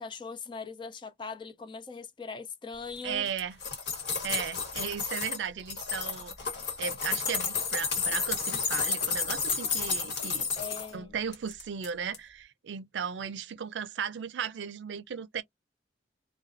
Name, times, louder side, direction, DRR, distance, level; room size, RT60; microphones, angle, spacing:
voice 1, 0.0-3.3 10.6-11.2, left 5 dB, 25° left, 0.4 m, -40 dB
voice 2, 3.0-3.6 4.2-6.3 6.8-10.5 10.9-15.4, right 7 dB, 85° right, 0.4 m, -36 dB
sound 1, 3.3-5.4 5.7-10.9 11.3-11.9 12.1-12.2, left 5 dB, 70° left, 1.2 m, -31 dB
2.4 x 2.2 x 2.5 m
head